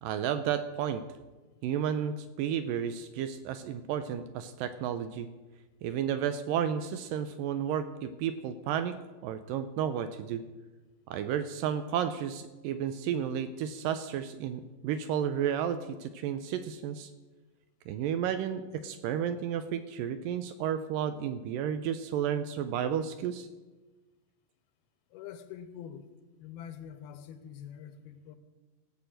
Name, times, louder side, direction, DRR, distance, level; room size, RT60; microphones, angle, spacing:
voice 1, 0.0-1.0 1.6-5.3 5.8-10.4 11.1-17.1 17.9-23.5, right 9 dB, 80° right, 10 dB, 2.0 m, -32 dB
voice 2, 25.1-26.1 26.4-28.4, left 9 dB, 85° left, 10 dB, 2.8 m, -45 dB
16.0 x 5.9 x 7.7 m, 1.2 s
omnidirectional pair, 4.3 m